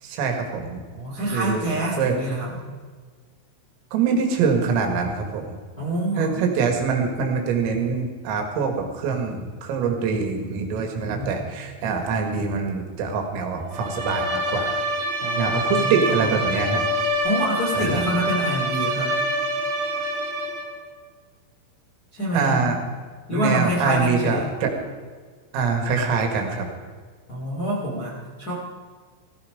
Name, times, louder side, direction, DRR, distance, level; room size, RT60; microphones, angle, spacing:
voice 1, 0.0-0.8 1.3-1.7 2.0-2.2 3.9-5.6 6.2-14.8 15.4-16.9 17.8-18.0 22.3-22.8 23.3-24.7 25.5-26.7, right 5 dB, 85° right, 3 dB, 4.7 m, -24 dB
voice 2, 0.9-2.6 5.8-6.4 11.0-11.4 15.2-16.3 17.2-19.2 22.1-22.6 23.3-24.5 27.3-28.5, right 1 dB, 30° left, -4 dB, 1.9 m, -27 dB
Bowed string instrument, 13.7-20.8, right 1 dB, 60° right, 2.9 m, -26 dB
17.0 x 15.0 x 5.1 m, 1.5 s
omnidirectional pair, 5.8 m